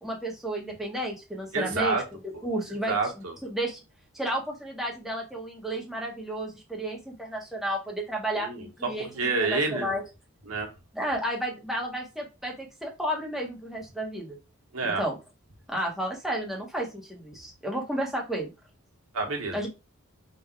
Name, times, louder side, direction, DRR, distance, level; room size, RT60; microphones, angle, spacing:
voice 1, 0.0-2.0 2.4-2.9 3.5-3.8 4.1-9.1 9.4-10.0 10.9-14.4 14.8-15.1 15.7-18.5 19.5-19.7, right 1 dB, ahead, -1 dB, 1.1 m, -32 dB
voice 2, 1.5-2.0 2.3-2.5 2.9-3.3 8.4-9.9 10.5-10.7 14.7-15.0 19.1-19.6, right 3 dB, 80° right, 1 dB, 1.3 m, -28 dB
3.7 x 2.6 x 4.5 m, 0.27 s
head